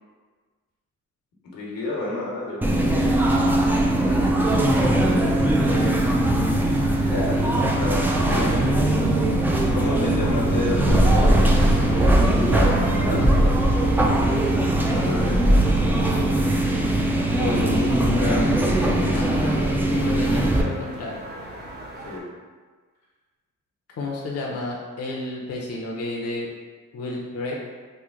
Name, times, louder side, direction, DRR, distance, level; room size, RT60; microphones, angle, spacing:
voice 1, 1.4-3.1 7.0-9.0 9.7-14.4 14.9-15.4 17.3-18.7 22.0-22.3, left 2 dB, 90° left, -4 dB, 1.1 m, -30 dB
sound 1, 2.6-20.6, right 1 dB, 5° right, 0.3 m, -20 dB
voice 2, 5.2-6.0 15.3-15.6 19.1-21.2 24.0-26.5 26.9-27.5, left 2 dB, 50° left, -2 dB, 0.6 m, -32 dB
sound 2, 10.5-22.2, right 1 dB, 30° right, 0.7 m, -38 dB
3.1 x 2.1 x 3.6 m, 1.4 s
cardioid pair, 85°, 33 cm